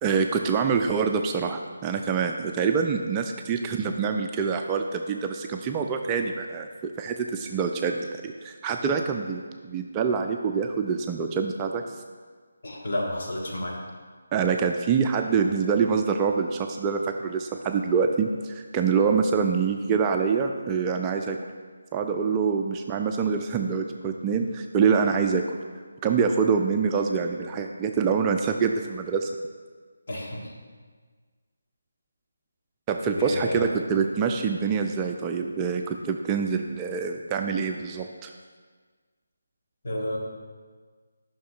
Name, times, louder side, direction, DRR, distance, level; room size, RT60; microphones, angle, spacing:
voice 1, 0.0-11.8 14.3-21.4 21.9-25.4 26.0-29.3 32.9-38.3, right 6 dB, 15° right, 3 dB, 0.3 m, -25 dB
voice 2, 12.6-13.8 30.1-30.5 33.2-33.7 39.8-40.2, left 1 dB, 50° left, -3 dB, 1.5 m, -30 dB
10.0 x 5.9 x 2.4 m, 1.5 s
figure-of-eight pair, 155°, 0 cm